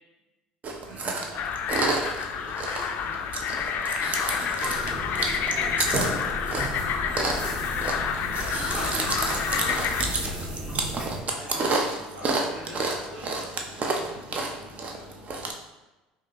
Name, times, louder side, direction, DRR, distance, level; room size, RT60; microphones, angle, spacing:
Chewing mastication, 0.6-15.5, right 3 dB, 40° right, 0.6 m, -31 dB
voice 1, 0.9-7.4 8.0-13.5 13.8-15.1, equal, 80° right, -7 dB, 0.9 m, -44 dB
sound 1, 1.3-10.0, left 7 dB, 55° left, 0.3 m, -29 dB
sound 2, 4.6-11.2, right 1 dB, 25° right, 1.1 m, -34 dB
4.9 x 2.5 x 2.9 m, 1.1 s
hypercardioid pair, 70°, 4 cm